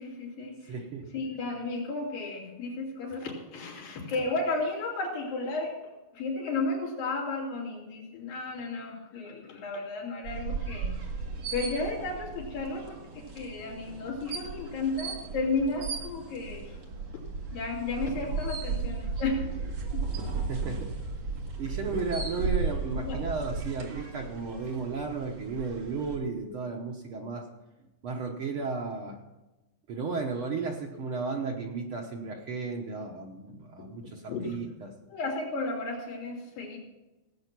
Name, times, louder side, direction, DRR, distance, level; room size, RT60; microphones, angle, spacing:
voice 1, 0.0-0.7 1.1-5.7 6.1-11.0 11.5-16.8 17.5-19.5 19.9-20.0 23.1-23.2 33.8-34.6 35.1-36.8, left 3 dB, 75° left, -4 dB, 4.6 m, -33 dB
voice 2, 0.7-1.1 16.4-16.5 20.5-20.9 21.6-27.5 28.0-29.2 29.9-34.9, right 4 dB, 85° right, -1 dB, 1.1 m, -34 dB
sound 1, 10.2-26.2, right 4 dB, 50° right, 2.8 m, -35 dB
18.0 x 8.1 x 6.0 m, 1.1 s
omnidirectional pair, 4.0 m